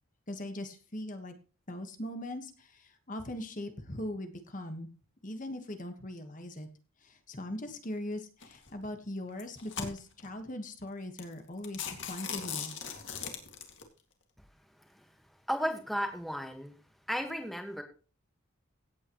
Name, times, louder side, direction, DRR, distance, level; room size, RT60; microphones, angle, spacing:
voice 1, 0.3-1.3 1.7-4.9 5.2-6.7 7.0-12.7, left 1 dB, 40° left, 6 dB, 1.4 m, -40 dB
sound 1, 8.4-8.7 9.3-10.3 10.8-10.9 11.2-11.3 11.6-13.8, left 7 dB, 60° left, 2.3 m, -39 dB
voice 2, 15.5-16.7 17.1-17.8, equal, ahead, 4 dB, 1.5 m, -34 dB
16.5 x 8.9 x 3.1 m, 0.36 s
head